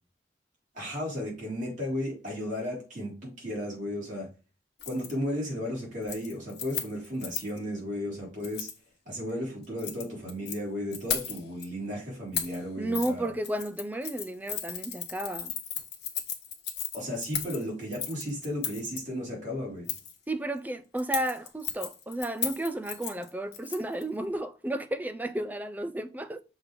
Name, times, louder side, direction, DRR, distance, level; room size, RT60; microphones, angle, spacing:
voice 1, 0.7-4.3 4.9-8.7 9.1-13.3 16.9-19.9, left 1 dB, 45° right, 3.6 m, -34 dB
Keys jangling, 4.8-5.1 5.5-5.7 6.0-7.6 8.4-8.8 9.6-10.6 10.9-11.6 12.3-12.6 12.9-13.1 13.4-19.0 19.9-20.2 21.0-24.0 24.3-24.4, left 8 dB, 65° left, 1.3 m, -35 dB
voice 2, 12.8-15.5 20.3-26.4, right 1 dB, 10° right, 0.4 m, -32 dB
6.4 x 3.3 x 5.1 m
head